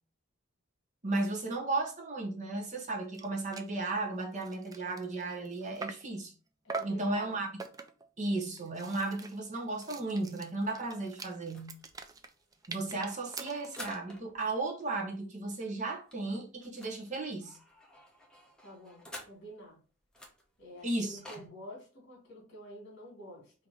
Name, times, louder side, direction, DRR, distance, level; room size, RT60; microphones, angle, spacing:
voice 1, 1.0-6.3 6.8-7.5 8.2-11.8 12.7-17.6 20.8-21.5, right 2 dB, 35° right, 1.0 m, -35 dB
sound 1, 2.9-3.0 3.1-3.3 3.5-3.8 4.2-6.2 6.7-7.1 7.6-8.1 8.5-14.0, right 4 dB, 15° right, 0.4 m, -44 dB
voice 2, 6.6-7.5 18.6-19.8 20.6-23.5, equal, 55° left, 2.1 m, -49 dB
sound 2, 11.4-14.4 14.8-14.9 15.1-15.3 15.5-19.7 20.1-21.5, equal, 5° left, 0.8 m, -51 dB
3.9 x 2.8 x 4.7 m
head